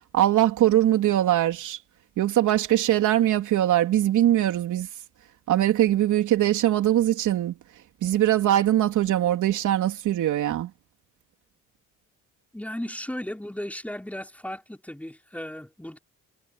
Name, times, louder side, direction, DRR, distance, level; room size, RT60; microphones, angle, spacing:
voice 1, 0.1-1.8 2.2-4.9 5.5-7.6 8.0-10.7, right 12 dB, 80° right, 3.7 m, -22 dB
voice 2, 12.5-16.0, left 1 dB, 5° left, 5.8 m, -35 dB
cardioid pair, 90°, 30 cm